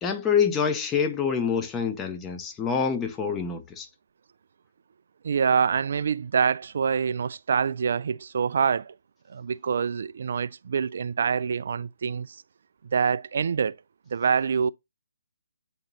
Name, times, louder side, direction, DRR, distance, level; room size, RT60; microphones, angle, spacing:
voice 1, 0.0-3.9, left 6 dB, 15° left, 0.8 m, -26 dB
voice 2, 5.2-8.9 9.3-12.4 12.9-13.8 14.1-14.7, right 6 dB, 55° right, 0.3 m, -25 dB
8.7 x 3.0 x 4.0 m
figure-of-eight pair, 150°, 0 cm